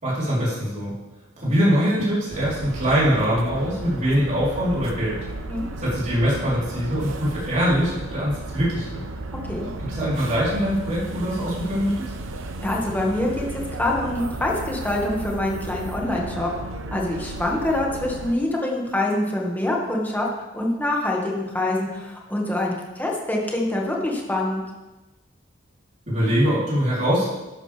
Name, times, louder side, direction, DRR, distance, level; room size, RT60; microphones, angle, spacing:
voice 1, 0.0-0.9 1.4-5.2 5.8-9.0 9.8-12.1 26.1-27.3, equal, 40° right, -8 dB, 4.1 m, -23 dB
sound 1, 2.3-18.3, right 2 dB, 80° right, 1.0 m, -34 dB
voice 2, 12.6-16.5 16.9-24.6, left 1 dB, 10° left, -2 dB, 2.0 m, -25 dB
12.0 x 11.5 x 3.6 m, 1.1 s
head